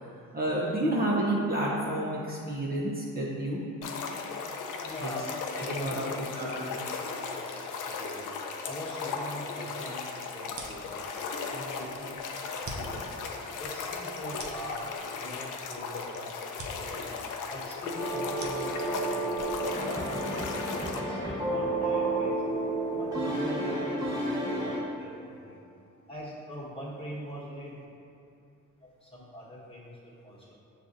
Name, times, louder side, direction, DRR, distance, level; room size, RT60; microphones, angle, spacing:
voice 1, 0.3-3.6 5.0-5.1 5.6-6.1 6.3-6.5, right 1 dB, 25° right, -5 dB, 0.7 m, -29 dB
sound 1, 3.8-21.0, left 5 dB, 65° left, 0.5 m, -37 dB
voice 2, 4.8-5.3 5.7-8.2 8.6-10.1 10.3-11.0 11.5-12.2 12.6-13.2 13.6-14.8 15.1-16.3 16.7-17.1 17.5-20.4 20.9-22.3 22.9-25.6 26.1-27.7 29.0-29.9 30.2-30.5, equal, 15° left, -7 dB, 1.4 m, -42 dB
sound 2, 10.5-20.3, right 2 dB, 60° right, 0.7 m, -47 dB
sound 3, 18.0-24.8, right 2 dB, 10° right, 1.4 m, -31 dB
6.4 x 2.5 x 2.6 m, 2.5 s
supercardioid pair, 55°, 34 cm